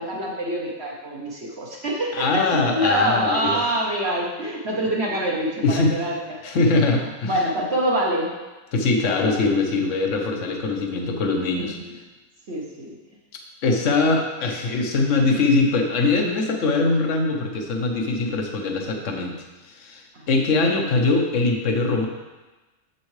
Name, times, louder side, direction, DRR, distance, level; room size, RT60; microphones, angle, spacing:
voice 1, 0.0-6.2 6.4-6.5 7.2-8.3 9.0-9.5 11.5-11.9 12.5-12.9 13.6-14.0 20.1-20.3, equal, 50° right, -3 dB, 1.2 m, -25 dB
voice 2, 2.1-3.6 5.6-6.0 6.4-7.4 8.7-11.8 13.6-22.1, left 3 dB, 55° left, 3 dB, 1.2 m, -22 dB
7.6 x 7.1 x 3.2 m, 1.2 s
omnidirectional pair, 1.6 m